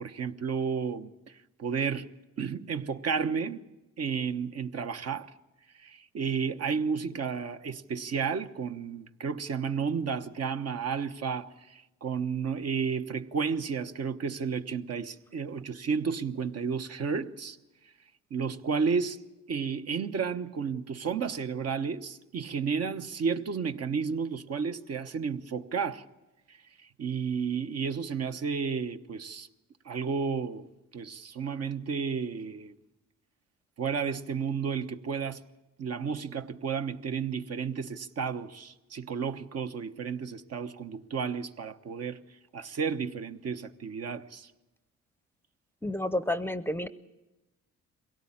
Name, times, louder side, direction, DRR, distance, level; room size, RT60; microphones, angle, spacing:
voice 1, 0.0-2.1 2.4-3.6 4.0-5.3 5.8-17.6 18.3-19.2 19.5-26.0 26.5-26.6 27.0-29.5 29.8-30.7 30.9-32.7 33.8-35.4 35.8-42.2 42.5-44.5, right 6 dB, 55° right, 1.1 m, -32 dB
voice 2, 45.8-46.9, left 1 dB, 5° left, 0.7 m, -30 dB
23.0 x 17.5 x 8.7 m
cardioid pair, 90°, 30 cm